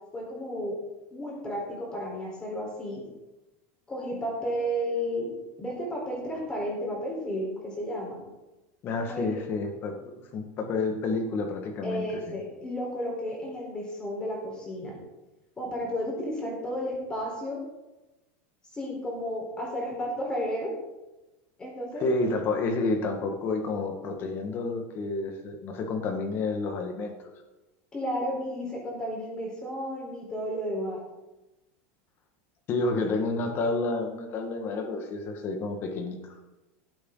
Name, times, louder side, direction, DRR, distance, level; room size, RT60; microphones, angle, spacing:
voice 1, 0.1-0.8 1.1-3.0 3.9-5.3 5.6-8.2 9.1-9.4 11.8-14.9 15.6-17.6 18.7-20.7 21.6-22.0 27.9-31.0, equal, 10° left, -3 dB, 4.3 m, -32 dB
voice 2, 8.8-10.0 10.3-12.4 22.0-27.3 32.7-36.2, left 3 dB, 30° left, 4 dB, 1.8 m, -30 dB
17.0 x 8.3 x 4.0 m, 1.1 s
supercardioid pair, 165°, 7 cm